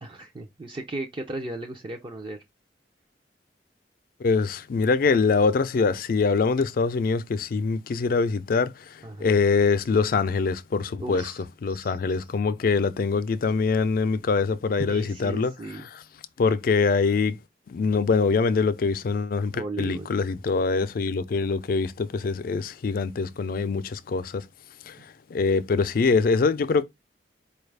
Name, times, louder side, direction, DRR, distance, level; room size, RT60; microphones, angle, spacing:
voice 1, 0.0-2.4 9.0-9.4 11.0-11.4 11.7-12.2 14.9-15.8 19.5-20.1, right 2 dB, 30° right, 0.5 m, -36 dB
voice 2, 4.2-8.7 9.2-11.2 11.6-15.5 16.4-17.4 17.7-24.4 24.9-25.0 25.3-26.8, left 4 dB, 55° left, 0.4 m, -24 dB
4.6 x 2.3 x 3.2 m
head